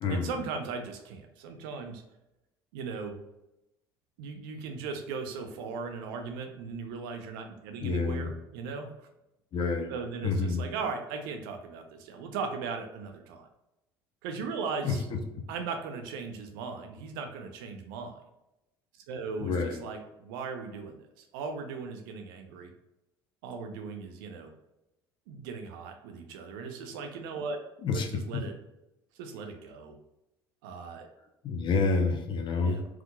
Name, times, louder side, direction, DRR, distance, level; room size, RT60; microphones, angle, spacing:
voice 1, 0.1-2.0 2.7-3.2 4.2-8.9 9.9-13.5 14.2-15.0 15.5-18.2 19.1-22.7 23.4-24.5 25.3-27.6 27.9-28.5 29.1-29.9 30.6-31.1 32.6-32.9, right 5 dB, 65° right, 5 dB, 0.8 m, -38 dB
voice 2, 7.8-8.3 9.5-9.9 10.2-10.6 14.8-14.9 19.4-19.8 27.8-28.4 31.4-32.8, left 4 dB, 40° left, 4 dB, 0.9 m, -28 dB
4.7 x 3.8 x 2.4 m, 0.90 s
figure-of-eight pair, 60°, 12 cm